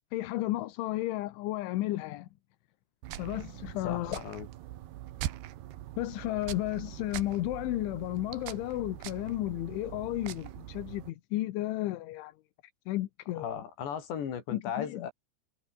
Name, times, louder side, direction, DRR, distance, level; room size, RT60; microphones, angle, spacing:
voice 1, 0.1-2.3 3.2-4.2 6.0-12.3 12.9-13.5 14.5-15.1, left 16 dB, 80° left, 3.5 m, -33 dB
sound 1, 3.0-11.1, right 14 dB, 65° right, 3.0 m, -42 dB
voice 2, 3.8-4.5 13.3-15.1, left 8 dB, 60° left, 5.7 m, -36 dB
omnidirectional pair, 5.7 m